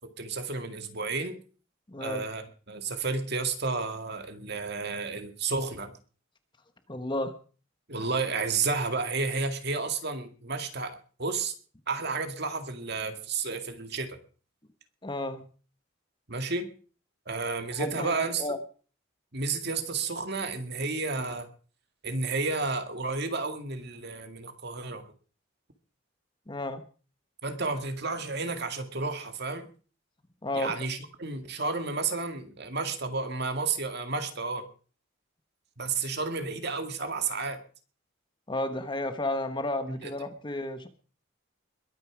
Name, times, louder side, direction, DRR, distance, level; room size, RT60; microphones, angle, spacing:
voice 1, 0.0-1.4 2.0-5.9 7.9-11.5 11.9-14.1 16.3-16.7 17.3-18.5 19.3-21.5 22.0-25.1 27.4-29.7 30.5-34.7 35.8-37.6 39.9-40.1, right 4 dB, 50° right, 7 dB, 2.1 m, -31 dB
voice 2, 1.9-2.2 6.9-7.3 15.0-15.5 17.8-18.6 26.5-26.8 30.4-30.7 38.5-40.9, left 1 dB, 20° left, 9 dB, 1.2 m, -32 dB
21.5 x 9.3 x 5.0 m, 0.40 s
head